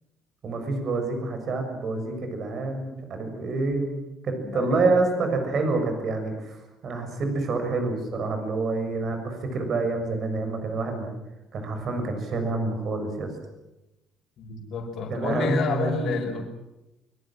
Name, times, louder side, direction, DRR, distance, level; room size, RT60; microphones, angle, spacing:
voice 1, 0.4-11.1 11.5-13.3 15.1-16.4, right 3 dB, 40° right, 6 dB, 6.9 m, -27 dB
voice 2, 4.4-4.9 14.4-16.4, left 4 dB, 50° left, 1 dB, 5.4 m, -29 dB
24.5 x 23.5 x 7.7 m, 0.97 s
cardioid pair, 160°, 0 cm